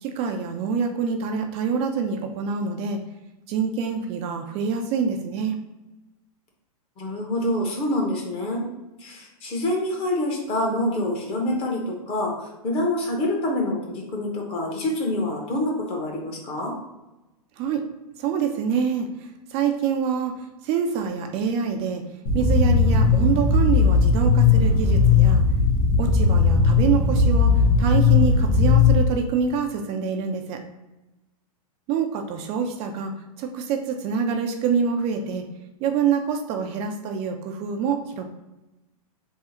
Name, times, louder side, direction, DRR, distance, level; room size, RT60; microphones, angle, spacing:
voice 1, 0.0-3.0 3.5-5.5 17.6-17.8 18.2-20.3 20.6-22.0 22.3-25.4 26.0-30.6 31.9-35.4 35.8-38.2, right 6 dB, 35° right, 4 dB, 0.4 m, -26 dB
voice 2, 7.0-8.6 9.0-16.7, left 1 dB, 30° left, 0 dB, 0.9 m, -26 dB
sound 1, 22.3-29.0, left 4 dB, 70° left, 1.1 m, -18 dB
3.6 x 2.0 x 4.3 m, 1.0 s
hypercardioid pair, 130°, 19 cm